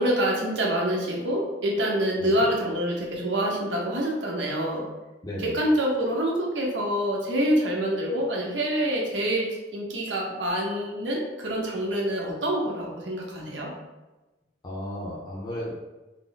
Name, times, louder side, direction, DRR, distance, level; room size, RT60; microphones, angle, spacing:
voice 1, 0.0-4.9 5.4-13.7, right 1 dB, 90° right, -2 dB, 0.8 m, -26 dB
voice 2, 5.2-5.6 14.6-15.7, equal, 25° left, -6 dB, 0.6 m, -34 dB
3.7 x 2.1 x 3.9 m, 1.1 s
head